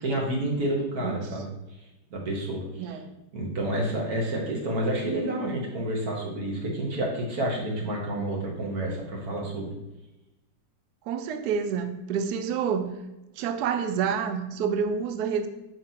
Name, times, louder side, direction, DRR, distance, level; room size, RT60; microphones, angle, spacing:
voice 1, 0.0-1.5 2.1-2.6 3.3-9.7, right 1 dB, 50° right, -1 dB, 2.0 m, -29 dB
voice 2, 2.8-3.1 11.1-12.9 13.4-15.5, right 6 dB, 70° right, 8 dB, 1.0 m, -28 dB
5.5 x 3.6 x 5.9 m, 0.98 s
omnidirectional pair, 2.2 m